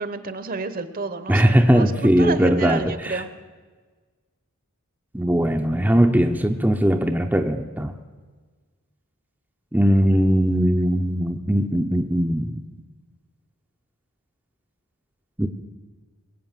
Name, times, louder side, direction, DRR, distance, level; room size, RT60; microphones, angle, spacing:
voice 1, 0.0-3.3, right 3 dB, 40° right, 13 dB, 0.9 m, -30 dB
voice 2, 1.3-3.2 5.1-7.9 9.7-12.6 15.4-15.5, equal, 10° right, 3 dB, 0.6 m, -19 dB
21.5 x 8.5 x 7.4 m, 1.4 s
head